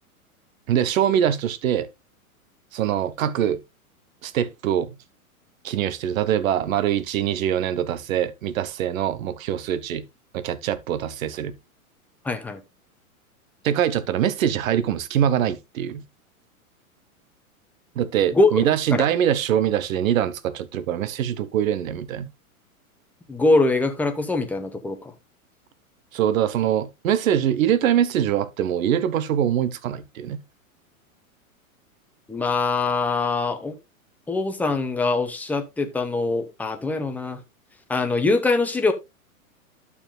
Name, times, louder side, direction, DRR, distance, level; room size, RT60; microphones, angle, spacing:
voice 1, 0.7-1.9 2.7-3.6 4.2-5.0 5.6-10.0 10.3-11.5 13.6-16.0 17.9-22.3 26.1-30.4, right 10 dB, 65° right, 1.0 m, -23 dB
voice 2, 12.2-12.6 18.3-18.6 18.9-19.0 23.3-25.0 32.3-33.7 34.3-37.4 37.9-38.9, left 3 dB, 5° left, 0.7 m, -23 dB
11.5 x 7.0 x 2.2 m
hypercardioid pair, 120°, 43 cm